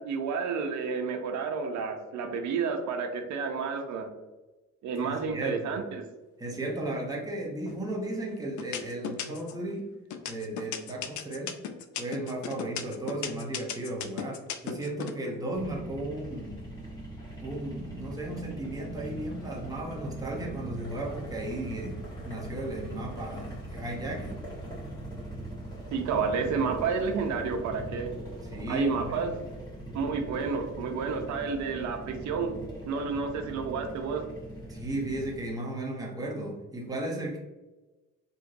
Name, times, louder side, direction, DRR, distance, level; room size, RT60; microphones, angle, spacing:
voice 1, 0.0-4.1 4.8-6.1 25.9-28.1 28.7-29.5 29.9-32.5 32.9-34.2, right 5 dB, 70° right, 5 dB, 0.6 m, -30 dB
voice 2, 5.0-5.8 6.4-9.9 10.3-11.6 12.0-16.6 17.4-24.4 28.4-29.3 34.7-37.4, right 1 dB, 10° right, -1 dB, 0.7 m, -35 dB
sound 1, 7.7-8.1 8.6-9.6 10.1-15.1, left 9 dB, 75° left, 0.5 m, -35 dB
sound 2, 15.5-35.4, right 1 dB, 15° left, 1.2 m, -41 dB
2.9 x 2.5 x 2.5 m, 1.1 s
cardioid pair, 90°, 30 cm